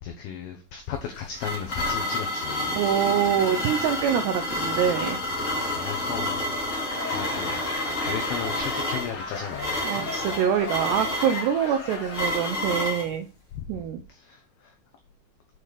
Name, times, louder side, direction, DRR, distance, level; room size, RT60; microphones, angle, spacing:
voice 1, 0.0-2.7 5.7-6.9 7.1-7.6 8.0-9.9 13.5-13.8 14.1-14.7, left 7 dB, 75° left, 2.3 m, -35 dB
sound 1, 0.9-13.1, left 1 dB, 25° left, 1.8 m, -29 dB
voice 2, 2.8-5.2 9.8-13.3 13.7-14.0, right 9 dB, 80° right, 2.5 m, -25 dB
Laughter / Crowd, 6.5-12.8, left 4 dB, 50° left, 2.1 m, -37 dB
8.4 x 5.4 x 6.6 m
omnidirectional pair, 5.7 m